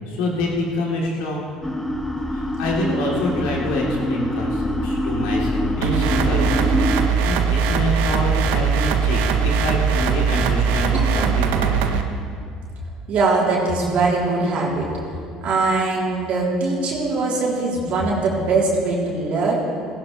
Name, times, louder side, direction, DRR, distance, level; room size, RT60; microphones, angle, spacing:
voice 1, 0.0-1.4 2.3-11.9, left 1 dB, 75° left, -3 dB, 3.1 m, -26 dB
sound 1, 1.6-7.1, left 1 dB, 10° left, 1.4 m, -25 dB
sound 2, 5.8-12.0, right 6 dB, 75° right, 0.9 m, -20 dB
voice 2, 13.1-14.9 15.4-19.6, right 3 dB, 55° right, -4 dB, 3.4 m, -21 dB
16.5 x 15.5 x 3.2 m, 2.2 s
hypercardioid pair, 65°, 3 cm